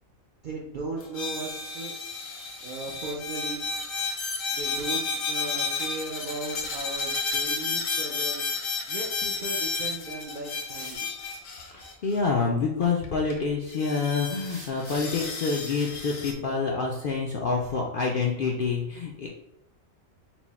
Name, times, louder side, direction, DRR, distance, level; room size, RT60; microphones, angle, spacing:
voice 1, 0.4-1.9 2.6-3.6 4.5-8.4 8.9-11.1, right 3 dB, 55° right, -2 dB, 0.5 m, -37 dB
sound 1, 1.0-12.2 13.0-13.1 13.3-13.4 13.7-16.3, left 4 dB, 80° left, 1.1 m, -32 dB
sound 2, 3.9-4.9 6.5-7.7 9.8-9.9 10.7-11.1 14.5-15.3 15.7-16.0, right 2 dB, 90° right, 1.5 m, -47 dB
voice 2, 11.7-19.3, left 4 dB, 60° left, -1 dB, 0.5 m, -27 dB
4.5 x 2.0 x 4.0 m, 0.83 s
omnidirectional pair, 1.4 m